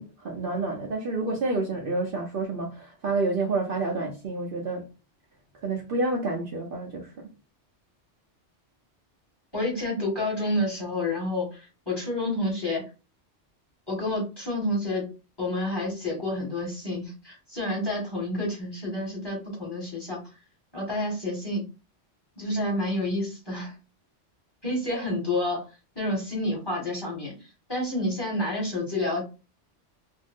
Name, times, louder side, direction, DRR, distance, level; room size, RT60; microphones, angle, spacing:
voice 1, 0.0-4.9 5.6-7.3, right 3 dB, 60° right, 0.7 m, -29 dB
voice 2, 9.5-12.8 13.9-15.1 15.4-20.2 20.7-21.7 22.4-23.7 24.6-25.7 25.9-27.3 27.7-29.2, left 1 dB, 20° left, 1.3 m, -29 dB
2.5 x 2.0 x 3.3 m
omnidirectional pair, 1.2 m